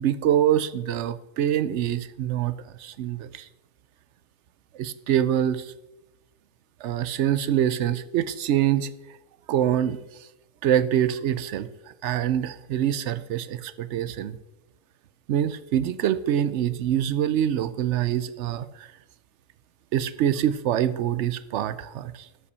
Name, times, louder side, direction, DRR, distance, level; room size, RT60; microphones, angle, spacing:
voice 1, 0.0-2.5 2.8-3.5 4.7-5.7 6.8-8.9 9.5-10.0 10.6-11.7 12.0-14.4 15.3-18.9 19.9-22.3, right 10 dB, 70° right, 13 dB, 0.7 m, -25 dB
13.0 x 5.7 x 6.7 m, 0.98 s
omnidirectional pair, 1.7 m